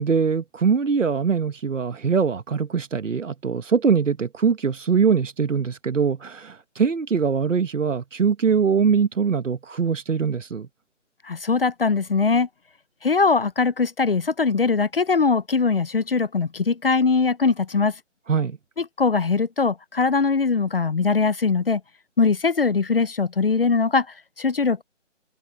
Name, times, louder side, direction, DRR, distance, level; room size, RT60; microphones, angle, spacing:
voice 1, 0.0-10.7 18.3-18.6, right 6 dB, 85° right, 1.3 m, -22 dB
voice 2, 11.2-12.5 13.0-18.0 18.8-21.8 22.2-24.8, left 4 dB, 50° left, 0.7 m, -21 dB
open air
hypercardioid pair, 175°, 37 cm